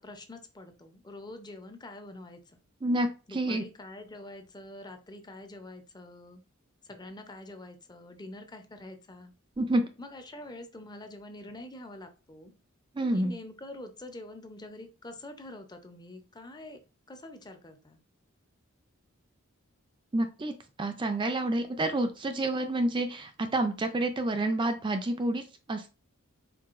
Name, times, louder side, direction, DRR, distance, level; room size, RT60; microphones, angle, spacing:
voice 1, 0.0-2.6 3.3-6.4 6.8-9.3 10.0-12.5 13.1-16.8 17.1-18.0, left 1 dB, 20° left, 7 dB, 0.6 m, -45 dB
voice 2, 2.8-3.6 9.6-9.9 12.9-13.3 20.1-25.9, right 1 dB, 20° right, 7 dB, 0.4 m, -29 dB
4.6 x 4.1 x 2.5 m, 0.32 s
head